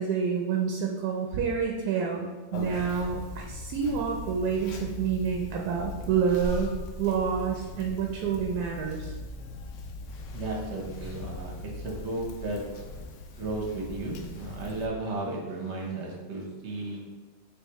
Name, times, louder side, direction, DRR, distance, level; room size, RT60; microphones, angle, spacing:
voice 1, 0.0-6.7 7.0-9.1 11.0-11.1, right 6 dB, 85° right, 0 dB, 1.1 m, -28 dB
Conversation, 2.5-14.9, left 2 dB, 70° left, 0.7 m, -39 dB
voice 2, 10.3-12.6 13.3-17.0, right 2 dB, 50° right, -1 dB, 1.0 m, -34 dB
5.6 x 2.9 x 3.0 m, 1.3 s
omnidirectional pair, 1.7 m